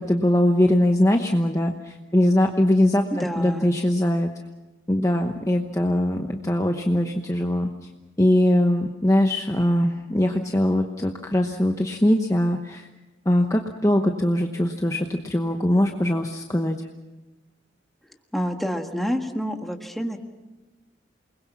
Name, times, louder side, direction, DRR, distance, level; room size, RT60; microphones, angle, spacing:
voice 1, 0.0-4.3 4.9-7.7 8.2-12.9 13.3-16.8, left 1 dB, 15° left, 4 dB, 1.0 m, -21 dB
voice 2, 3.1-3.7 18.3-20.2, equal, ahead, 3 dB, 1.6 m, -28 dB
28.5 x 21.0 x 6.0 m, 1.1 s
head